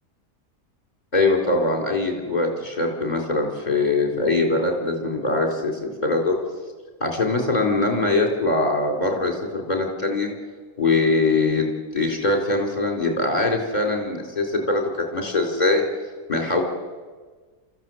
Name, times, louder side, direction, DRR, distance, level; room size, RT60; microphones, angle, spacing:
voice 1, 1.1-6.4 7.0-10.3 10.8-15.8 16.3-16.6, left 2 dB, 25° left, 1 dB, 4.1 m, -22 dB
29.5 x 14.5 x 7.8 m, 1.4 s
omnidirectional pair, 1.7 m